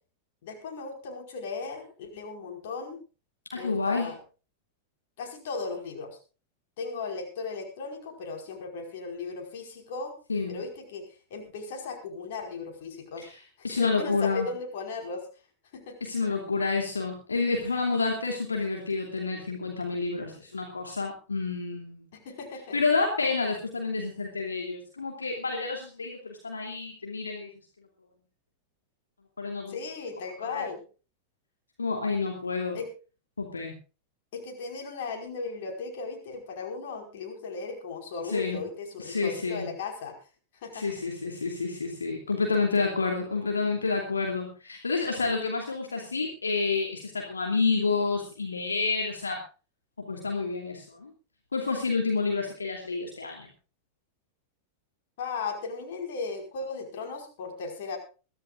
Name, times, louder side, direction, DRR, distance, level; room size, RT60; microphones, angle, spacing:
voice 1, 0.4-3.0 3.5-4.2 5.2-6.2 6.8-10.1 10.5-11.0 11.3-13.2 13.6-15.3 15.7-16.0 22.2-22.8 29.7-30.8 32.7-32.9 34.3-40.2 40.5-40.9 55.2-58.0, left 4 dB, 55° left, 3 dB, 5.1 m, -36 dB
voice 2, 3.5-4.1 10.3-10.6 13.2-13.4 13.6-14.5 16.0-22.1 22.7-27.5 29.4-29.8 30.4-30.6 31.8-32.8 33.4-33.7 38.2-38.6 39.0-39.7 40.7-49.4 50.0-51.1 51.5-53.5, left 4 dB, 75° left, 1 dB, 2.8 m, -29 dB
22.5 x 14.5 x 2.5 m, 0.34 s
figure-of-eight pair, 90°, 0 cm